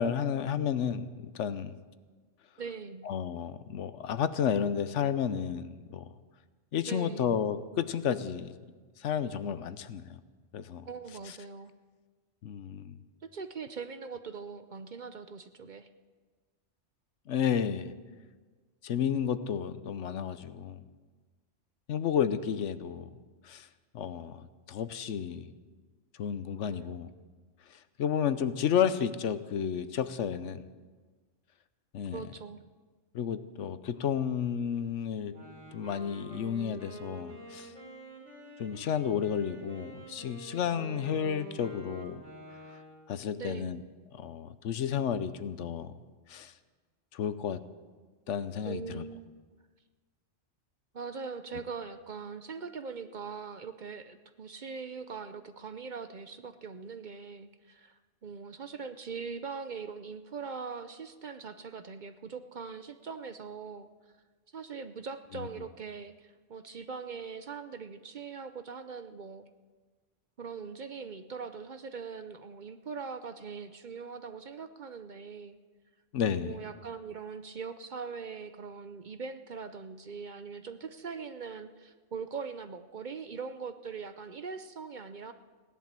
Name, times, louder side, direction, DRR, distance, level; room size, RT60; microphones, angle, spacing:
voice 1, 0.0-1.8 3.0-6.1 6.7-8.6 9.0-10.2 10.5-10.9 12.4-13.0 17.3-17.9 18.8-20.8 21.9-23.1 23.4-23.7 23.9-25.5 26.2-27.1 27.7-30.6 31.9-32.2 33.1-35.4 35.7-37.7 38.6-42.2 43.1-43.8 44.1-45.9 46.3-46.5 47.1-47.6 48.3-49.1 65.3-65.5 76.1-76.6, left 8 dB, 80° left, 13 dB, 1.1 m, -32 dB
voice 2, 2.6-3.1 6.9-7.4 10.9-11.7 13.2-15.9 26.5-27.0 32.1-32.6 43.4-43.8 48.6-49.3 50.9-63.9 64.5-69.4 70.4-75.6 76.3-85.3, right 5 dB, 50° right, 10 dB, 0.7 m, -41 dB
Wind instrument woodwind instrument, 35.2-43.2, equal, 85° right, 3.6 m, -47 dB
17.0 x 11.0 x 7.5 m, 1.4 s
omnidirectional pair, 1.2 m